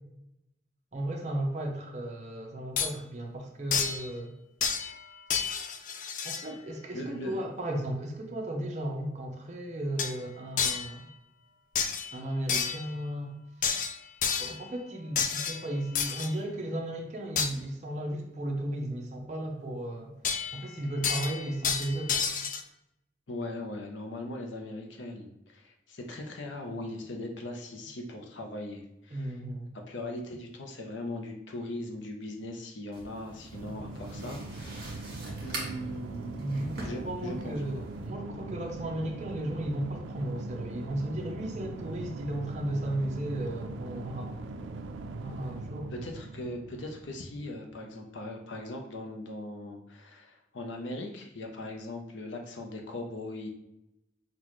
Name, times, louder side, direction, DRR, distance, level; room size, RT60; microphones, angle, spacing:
voice 1, 0.9-4.3 6.2-11.1 12.1-13.3 14.4-20.1 20.5-22.3 29.1-29.7 36.4-44.3 45.2-45.9, right 1 dB, 40° right, 1 dB, 0.7 m, -35 dB
sound 1, 2.8-2.9 3.7-4.1 4.6-5.0 5.3-6.5 10.0-10.2 10.6-10.9 11.8-12.1 12.5-12.9 13.6-14.6 15.2-16.3 17.4-17.5 20.2-20.7 21.0-22.6, left 6 dB, 45° left, 0.3 m, -30 dB
voice 2, 6.9-7.4 23.3-29.4 29.9-35.1 35.4-37.6 45.9-53.5, left 1 dB, 85° left, 2 dB, 0.7 m, -39 dB
sound 2, 32.9-38.1, right 2 dB, 55° right, 1.6 m, -44 dB
jf Gome Drum, 33.5-47.9, right 2 dB, 90° right, 0.4 m, -41 dB
5.9 x 2.4 x 3.1 m, 0.86 s
head